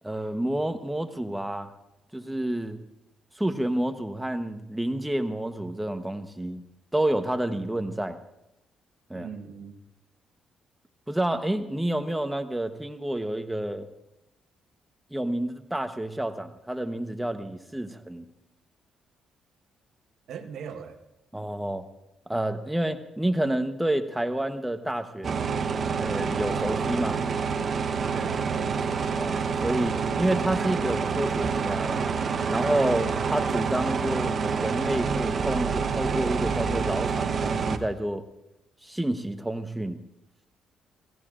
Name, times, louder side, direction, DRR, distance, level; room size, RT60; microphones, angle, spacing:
voice 1, 0.0-1.7 2.1-2.8 3.4-6.6 6.9-8.2 9.1-9.3 11.1-13.9 15.1-18.3 21.3-21.9 22.3-25.4 26.0-27.2 29.2-32.1 32.5-38.3 38.8-40.0, right 1 dB, 5° right, 1.0 m, -29 dB
voice 2, 9.1-9.8 20.3-21.0 28.1-29.3, right 7 dB, 75° right, 1.3 m, -40 dB
sound 1, 25.2-37.8, right 5 dB, 45° right, 1.0 m, -27 dB
29.5 x 17.0 x 2.5 m
cardioid pair, 90°, 0 cm